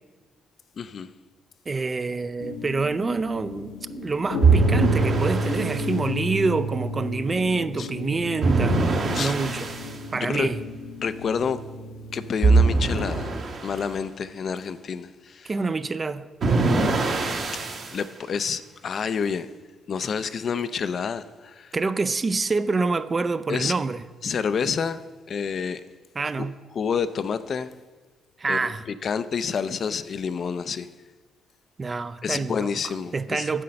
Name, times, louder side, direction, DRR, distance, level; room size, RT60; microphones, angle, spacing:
voice 1, 0.8-1.1 7.8-7.9 9.1-9.3 10.1-10.5 11.0-11.6 12.1-13.3 13.6-15.5 17.9-19.5 19.9-21.7 23.5-23.7 24.2-25.0 25.3-25.8 26.4-26.5 26.8-27.7 28.5-30.9 32.2-33.5, left 6 dB, 50° left, 0.4 m, -28 dB
voice 2, 1.7-8.8 9.2-9.7 10.1-10.6 15.4-16.3 21.7-24.0 26.2-26.5 28.4-28.8 31.8-33.6, right 4 dB, 30° right, 0.4 m, -26 dB
sound 1, 2.4-13.3, equal, 80° left, 0.9 m, -31 dB
sound 2, 4.4-5.8 8.4-9.9 12.4-13.8 16.4-18.0, right 3 dB, 55° right, 1.4 m, -22 dB
9.8 x 6.6 x 5.2 m
cardioid pair, 90°, 0 cm